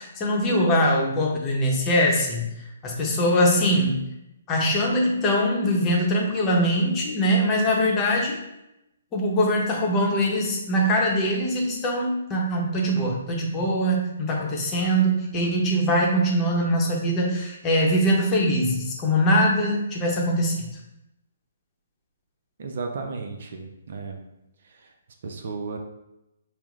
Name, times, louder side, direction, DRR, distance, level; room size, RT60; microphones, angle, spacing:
voice 1, 0.0-2.4 2.8-4.0 4.5-8.4 9.1-20.7, equal, 25° left, -2 dB, 0.8 m, -22 dB
voice 2, 22.6-24.2 25.2-25.8, right 4 dB, 60° right, 4 dB, 0.5 m, -33 dB
5.6 x 2.1 x 2.5 m, 0.87 s
hypercardioid pair, 145°, 0 cm